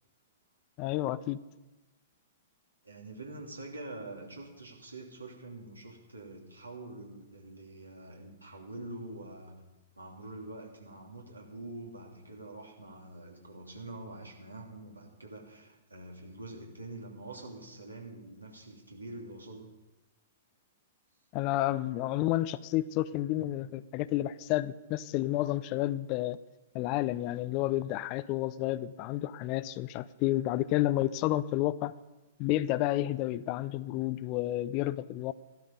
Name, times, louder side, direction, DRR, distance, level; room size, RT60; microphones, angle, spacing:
voice 1, 0.8-1.4 21.3-26.4 26.7-31.9 32.4-35.3, left 15 dB, 35° left, 17 dB, 0.5 m, -30 dB
voice 2, 2.8-9.6 9.9-19.7, right 2 dB, 80° right, 0 dB, 2.9 m, -45 dB
15.0 x 12.0 x 5.3 m, 1.1 s
figure-of-eight pair, 105°, 0 cm